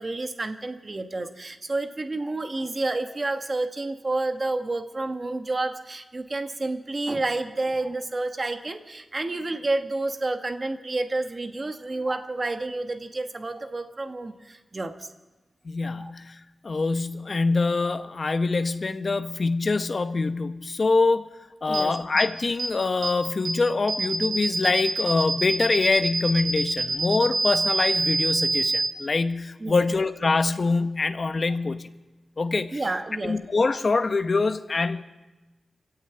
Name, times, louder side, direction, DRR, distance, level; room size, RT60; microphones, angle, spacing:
voice 1, 0.0-15.1 16.0-16.1 21.7-21.9 29.6-29.9 32.7-33.4, right 2 dB, 25° right, 7 dB, 1.2 m, -30 dB
voice 2, 15.6-21.3 21.6-31.9 32.4-32.8 33.2-35.0, left 3 dB, 35° left, 9 dB, 1.0 m, -24 dB
sound 1, 21.7-21.8 22.2-22.3 22.6-22.7 23.0-23.1 23.4-23.5 23.9-28.9, right 3 dB, 70° right, 2.7 m, -25 dB
25.5 x 15.0 x 8.9 m, 1.1 s
wide cardioid pair, 170°, 0 cm